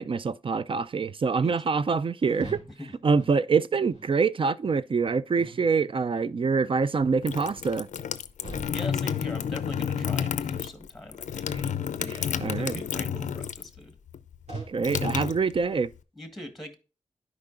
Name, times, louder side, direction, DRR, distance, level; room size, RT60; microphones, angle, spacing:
voice 1, 0.0-2.6 3.0-7.9 12.0-12.8 14.7-15.9, right 5 dB, 45° right, 0.4 m, -25 dB
sound 1, 2.4-2.7 3.1-3.4 3.9-4.1 4.6-4.8 5.4-5.7 6.1-6.4 6.9-7.1 7.6-7.8 8.4-8.8 9.2-9.5 9.9-10.1 10.7-10.8 11.4-11.8 12.2-12.5 13.0-13.2 13.7-13.8 14.5-14.8 15.2-15.5, right 2 dB, 70° right, 3.9 m, -44 dB
sound 2, 7.0-13.8 14.1-15.9, left 8 dB, 90° left, 0.4 m, -31 dB
voice 2, 8.7-11.5 12.0-14.0 16.2-16.8, equal, ahead, 1.5 m, -42 dB
10.5 x 4.9 x 2.5 m
cardioid pair, 50°, 12 cm